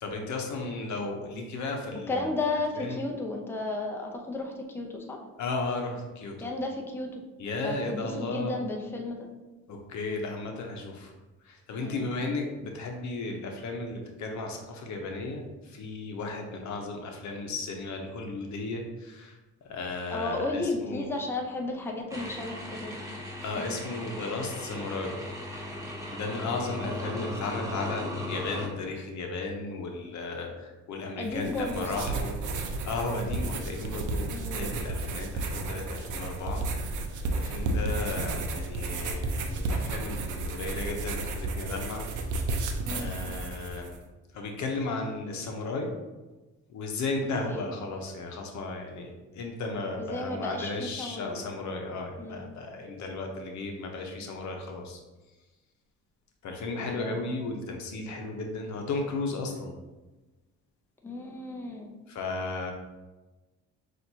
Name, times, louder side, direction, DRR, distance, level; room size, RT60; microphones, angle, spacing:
voice 1, 0.0-2.3 2.8-3.0 5.4-6.4 7.4-8.5 9.7-11.1 11.4-19.4 19.6-21.1 23.4-25.2 26.1-36.7 36.9-37.0 37.3-42.1 42.9-43.9 44.3-45.9 46.7-55.0 56.4-59.7 62.1-62.7, left 3 dB, 70° left, 2 dB, 0.8 m, -35 dB
voice 2, 2.1-5.2 6.4-7.1 7.6-9.3 11.8-12.1 20.1-23.0 23.6-23.8 26.8-27.3 31.2-32.0 34.3-34.7 42.9-43.2 47.4-47.7 50.0-51.4 52.2-52.5 56.8-57.4 61.0-61.9, left 2 dB, 10° left, 1 dB, 0.6 m, -34 dB
sound 1, 22.1-28.7, left 1 dB, 10° right, 1.1 m, -37 dB
sound 2, 31.3-44.0, right 2 dB, 75° right, 0.6 m, -32 dB
5.9 x 2.6 x 2.7 m, 1.1 s
cardioid pair, 90°, 30 cm